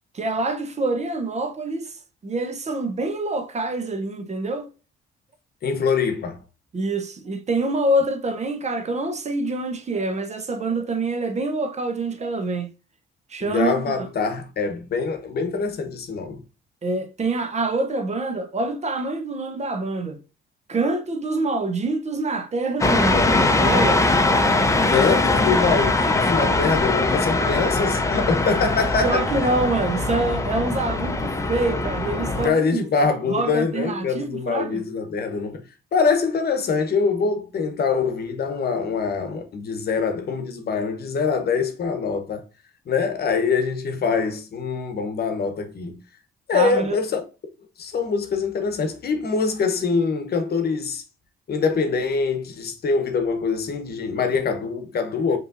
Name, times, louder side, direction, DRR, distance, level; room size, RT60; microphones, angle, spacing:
voice 1, 0.1-4.7 6.7-12.7 13.3-14.1 16.8-20.2 20.7-24.1 29.0-32.8 33.3-34.8 46.5-47.0, right 2 dB, 35° right, 0.7 m, -26 dB
voice 2, 5.6-6.4 13.4-16.4 24.9-29.3 32.2-35.6 35.9-42.4 42.9-46.0 46.5-47.2 47.8-51.0 51.5-55.4, left 5 dB, 55° left, 0.9 m, -24 dB
sound 1, 22.8-32.5, left 2 dB, 15° left, 0.6 m, -21 dB
5.2 x 3.1 x 2.5 m
cardioid pair, 90°, 20 cm